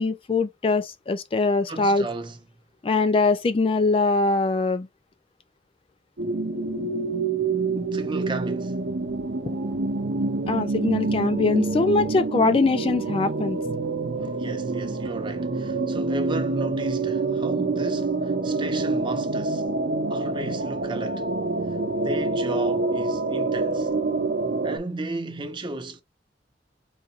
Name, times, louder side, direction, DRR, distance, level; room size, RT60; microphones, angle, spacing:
voice 1, 0.0-2.1 2.8-4.9 10.5-13.6, left 3 dB, 30° left, 0.4 m, -22 dB
voice 2, 1.7-2.4 7.9-8.8 14.2-19.7 20.1-21.3 22.0-23.9 24.6-26.0, right 2 dB, 25° right, 0.7 m, -34 dB
sound 1, 6.2-24.8, right 3 dB, 65° right, 0.7 m, -26 dB
4.0 x 3.9 x 2.4 m
head